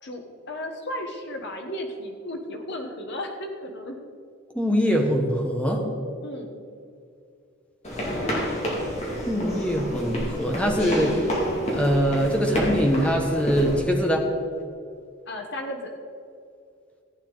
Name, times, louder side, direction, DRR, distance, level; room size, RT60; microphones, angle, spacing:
voice 1, 0.0-4.0 6.2-6.6 15.3-15.9, left 1 dB, 60° left, 3 dB, 1.3 m, -34 dB
voice 2, 4.5-5.8 9.3-11.2 11.7-14.3, equal, 5° left, 2 dB, 1.2 m, -23 dB
sound 1, 7.8-13.8, equal, 35° left, 2.4 m, -29 dB
15.0 x 8.4 x 4.0 m, 2.4 s
head